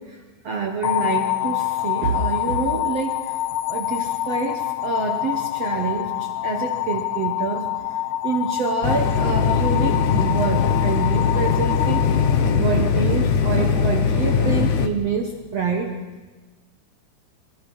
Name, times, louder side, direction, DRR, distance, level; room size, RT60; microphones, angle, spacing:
voice 1, 0.0-3.4 3.7-7.7 8.2-12.1 12.5-15.9, right 5 dB, 70° right, 3 dB, 1.5 m, -27 dB
sound 1, 0.8-13.0, left 15 dB, 80° left, 2.2 m, -26 dB
sound 2, 8.8-14.9, left 6 dB, 65° left, 2.2 m, -20 dB
25.5 x 23.0 x 5.6 m, 1.3 s
omnidirectional pair, 5.2 m